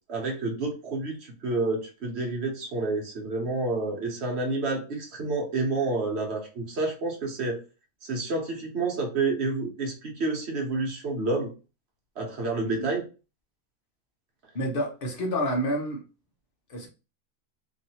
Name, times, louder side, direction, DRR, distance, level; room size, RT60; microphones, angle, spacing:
voice 1, 0.1-7.6 8.1-11.5 12.2-13.0, right 3 dB, 55° right, 0 dB, 1.2 m, -29 dB
voice 2, 14.5-16.0 16.7-16.9, equal, 45° left, 2 dB, 1.0 m, -29 dB
3.1 x 2.7 x 2.8 m, 0.32 s
omnidirectional pair, 1.4 m